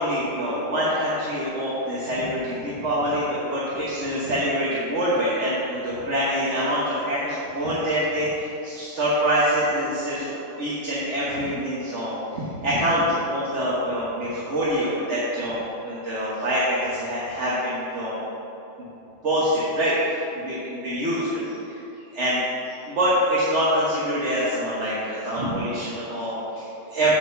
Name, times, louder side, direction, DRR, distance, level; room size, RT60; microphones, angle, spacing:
voice 1, 0.0-18.3 18.8-18.9 19.2-21.8 22.1-22.4 22.9-27.1, equal, 65° right, -8 dB, 1.7 m, -25 dB
6.5 x 6.0 x 6.8 m, 2.8 s
omnidirectional pair, 1.3 m